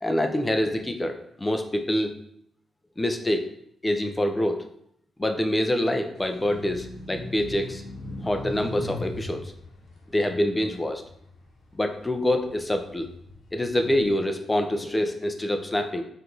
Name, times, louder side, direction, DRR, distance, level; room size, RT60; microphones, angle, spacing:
voice 1, 0.0-2.1 3.0-3.4 3.8-4.6 5.2-7.8 8.1-9.4 10.1-11.0 11.7-13.1 13.5-16.0, left 1 dB, 10° left, 6 dB, 0.4 m, -26 dB
sound 1, 6.2-11.7 12.2-14.1, left 1 dB, 75° left, 0.9 m, -39 dB
4.6 x 2.4 x 3.8 m, 0.71 s
wide cardioid pair, 150°, 0 cm